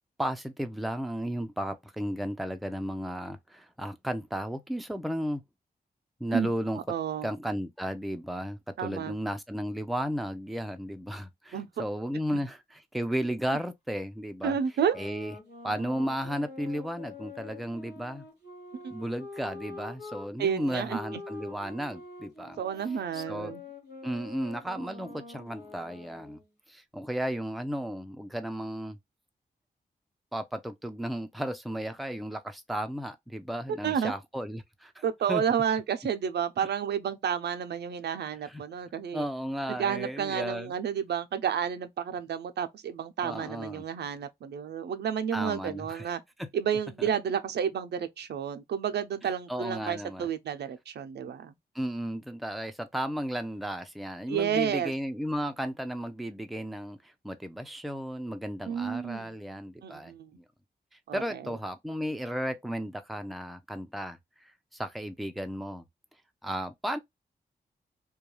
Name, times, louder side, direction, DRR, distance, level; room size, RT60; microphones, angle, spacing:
voice 1, 0.2-5.4 6.2-6.9 7.2-14.6 14.9-15.3 15.6-18.3 18.9-22.6 23.1-23.5 24.0-26.4 26.7-29.0 30.3-35.0 35.3-35.4 38.5-38.6 39.1-40.7 43.2-43.8 45.3-46.1 46.4-46.5 47.0-47.1 49.5-50.3 51.7-60.4 60.9-65.9 66.4-67.0, equal, ahead, 0.4 m, -34 dB
voice 2, 6.9-7.3 8.8-9.2 11.5-11.8 14.4-15.0 18.8-18.9 20.4-21.0 22.6-23.6 33.8-34.1 35.0-39.3 39.7-46.2 46.5-51.5 54.3-54.9 58.7-59.3 59.8-60.3 61.1-61.6, right 8 dB, 85° right, 0.4 m, -31 dB
sound 1, 14.6-20.3 20.9-26.5, left 3 dB, 85° left, 1.4 m, -45 dB
2.3 x 2.2 x 3.0 m
cardioid pair, 80°, 17 cm